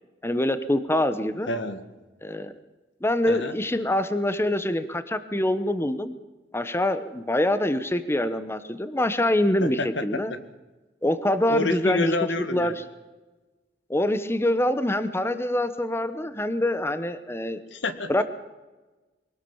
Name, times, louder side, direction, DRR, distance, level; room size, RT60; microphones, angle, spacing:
voice 1, 0.2-1.5 2.2-2.5 3.0-6.1 6.5-10.3 11.0-12.1 12.5-12.8 13.9-17.6 18.1-18.2, left 1 dB, 15° left, 12 dB, 1.0 m, -25 dB
voice 2, 1.5-1.9 3.3-3.5 9.6-10.4 11.5-12.7 17.7-18.2, left 2 dB, 75° left, 10 dB, 1.8 m, -28 dB
24.0 x 18.0 x 7.2 m, 1.2 s
head